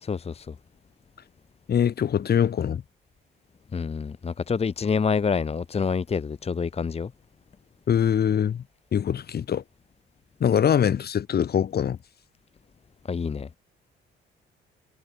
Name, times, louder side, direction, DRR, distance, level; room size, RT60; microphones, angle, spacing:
voice 1, 0.0-0.5 3.7-7.1 13.1-13.5, left 5 dB, 30° left, 1.0 m, -27 dB
voice 2, 1.7-2.8 7.9-8.6 8.9-9.6 10.4-12.0, left 8 dB, 55° left, 1.8 m, -23 dB
cardioid pair, 90°, 20 cm